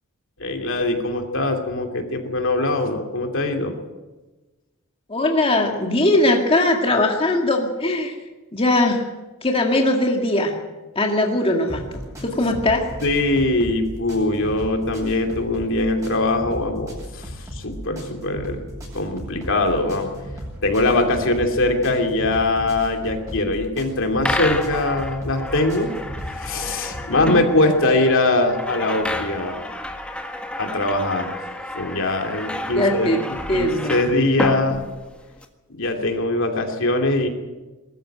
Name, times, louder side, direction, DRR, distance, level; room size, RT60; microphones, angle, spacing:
voice 1, 0.4-3.7 12.4-12.5 13.0-20.1 20.6-25.9 26.4-29.6 30.6-31.4 31.7-34.9 35.7-37.3, left 2 dB, 65° left, 4 dB, 2.7 m, -22 dB
voice 2, 5.1-8.1 8.5-9.1 9.4-10.5 11.0-12.9 32.8-33.2 33.5-33.9, left 2 dB, 25° left, 1 dB, 2.1 m, -20 dB
sound 1, 11.7-27.1, equal, 15° right, 7.6 m, -36 dB
sound 2, 24.2-35.4, left 1 dB, 5° left, 1.6 m, -30 dB
21.0 x 13.5 x 9.1 m, 1.2 s
head